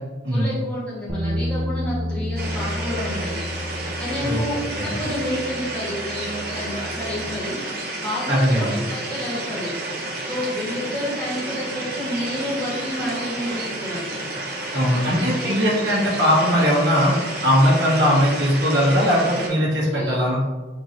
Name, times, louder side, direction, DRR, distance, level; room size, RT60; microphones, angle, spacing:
voice 1, 0.3-3.4 4.0-9.7 10.2-14.1 14.8-15.6 19.9-20.3, left 1 dB, 5° left, -9 dB, 1.5 m, -30 dB
sound 1, 1.1-7.3, equal, 15° right, 0.5 m, -31 dB
sound 2, 2.4-19.5, right 2 dB, 55° right, 0.9 m, -31 dB
voice 2, 8.3-8.7 14.7-17.1 17.4-20.4, equal, 80° right, -5 dB, 1.4 m, -19 dB
4.4 x 3.1 x 3.0 m, 1.2 s
head